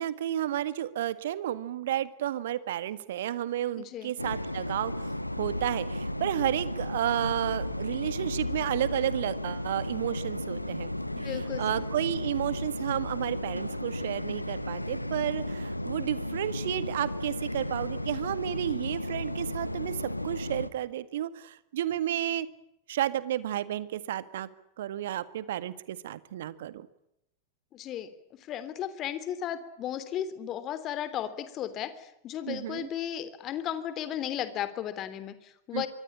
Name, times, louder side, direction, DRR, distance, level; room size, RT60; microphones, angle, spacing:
voice 1, 0.0-4.9 5.4-10.9 11.6-22.5 22.9-24.5 24.8-26.9 32.5-32.9 35.7-35.9, right 12 dB, 60° right, 15 dB, 1.8 m, -32 dB
voice 2, 3.8-4.1 11.1-11.9 27.7-28.1 28.5-35.9, left 10 dB, 35° left, 13 dB, 3.3 m, -35 dB
sound 1, 4.2-20.7, left 1 dB, 85° left, 1.4 m, -34 dB
25.0 x 24.0 x 8.8 m, 0.81 s
figure-of-eight pair, 90°, 0 cm